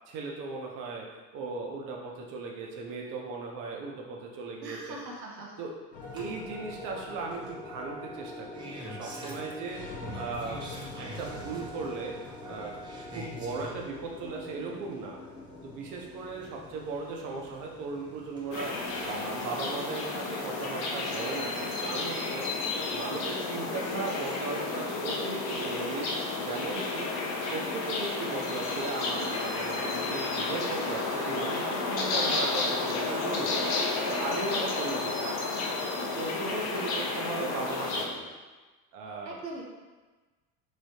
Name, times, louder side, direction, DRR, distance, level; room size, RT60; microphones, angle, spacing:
voice 1, 0.1-5.0 5.6-5.7 6.1-10.6 11.0-12.2 12.5-12.7 13.1-15.2 15.6-18.7 19.0-22.5 22.9-27.1 27.5-33.6 34.1-35.4 36.2-38.3 38.9-39.4, right 3 dB, 40° right, -1 dB, 0.7 m, -37 dB
voice 2, 4.6-5.5 39.2-39.6, right 2 dB, 85° right, -1 dB, 0.6 m, -41 dB
sound 1, 5.9-24.3, left 3 dB, 80° left, 0.7 m, -46 dB
Engine starting, 6.0-21.9 23.2-23.3, right 1 dB, 10° right, 0.3 m, -46 dB
sound 2, 18.5-38.1, left 3 dB, 35° left, 0.6 m, -31 dB
3.2 x 3.1 x 2.7 m, 1.3 s
figure-of-eight pair, 70°, 49 cm